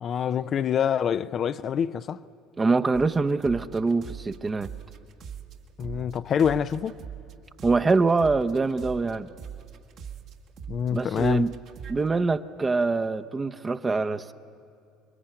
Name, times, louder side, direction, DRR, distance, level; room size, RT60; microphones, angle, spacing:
voice 1, 0.0-2.2 5.8-7.0 10.7-11.5, left 8 dB, 45° left, 0.6 m, -26 dB
voice 2, 2.6-4.7 7.6-9.3 10.9-11.5 11.9-14.3, right 3 dB, 25° right, 0.9 m, -24 dB
sound 1, 2.9-5.5 5.8-12.0, right 8 dB, 55° right, 1.7 m, -41 dB
26.5 x 22.0 x 8.9 m
hypercardioid pair, 75°, 0 cm